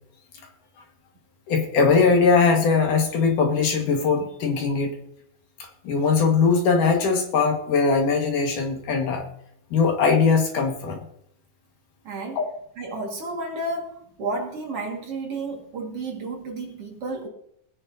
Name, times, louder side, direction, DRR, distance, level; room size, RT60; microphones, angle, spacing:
voice 1, 1.5-5.0 5.6-9.2 9.7-11.0 12.4-12.5, left 5 dB, 60° left, 3.0 m, -20 dB
voice 2, 12.0-12.4 12.8-17.3, right 2 dB, 45° right, 2.4 m, -32 dB
20.5 x 9.9 x 2.7 m
omnidirectional pair, 4.3 m